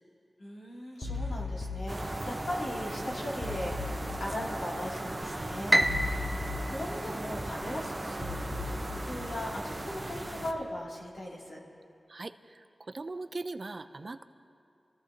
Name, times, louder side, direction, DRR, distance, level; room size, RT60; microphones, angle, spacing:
voice 1, 0.4-8.4 8.9-11.6, left 1 dB, 90° left, -5 dB, 2.9 m, -39 dB
sound 1, 1.0-10.5, left 3 dB, 15° left, 2.1 m, -39 dB
sound 2, 1.9-10.5, right 2 dB, 35° right, 1.0 m, -38 dB
Piano, 5.7-8.0, right 1 dB, 15° right, 0.6 m, -29 dB
voice 2, 12.1-14.2, right 3 dB, 55° right, 10 dB, 0.6 m, -40 dB
26.5 x 15.0 x 2.9 m, 2.6 s
cardioid pair, 50°, 0 cm